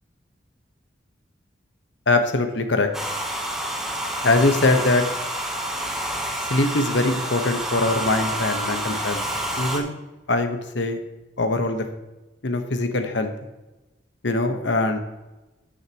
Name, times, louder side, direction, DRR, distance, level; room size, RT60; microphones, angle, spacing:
voice 1, 2.1-2.9 4.2-5.0 6.5-9.2 9.6-10.0 10.3-11.0 11.4-11.8 12.4-13.3 14.2-15.0, left 2 dB, 75° left, 7 dB, 1.1 m, -22 dB
Domestic sounds home sounds, 2.9-9.8, right 1 dB, ahead, 1.0 m, -28 dB
14.0 x 6.5 x 2.9 m, 1.1 s
head